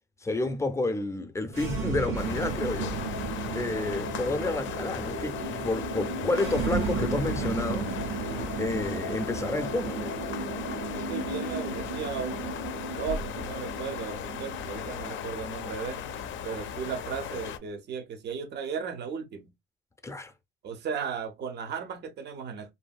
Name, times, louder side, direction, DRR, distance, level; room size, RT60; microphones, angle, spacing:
voice 1, 0.2-3.0 3.5-7.9 8.6-10.1 20.0-20.3, left 2 dB, 15° left, 0.5 m, -30 dB
sound 1, 1.5-17.5, right 3 dB, 85° right, 1.6 m, -34 dB
sound 2, 2.1-17.6, left 8 dB, 70° left, 0.4 m, -37 dB
voice 2, 11.0-16.0 16.4-19.5 20.6-22.7, right 6 dB, 60° right, 0.6 m, -36 dB
2.6 x 2.6 x 2.3 m
cardioid pair, 90°, 20 cm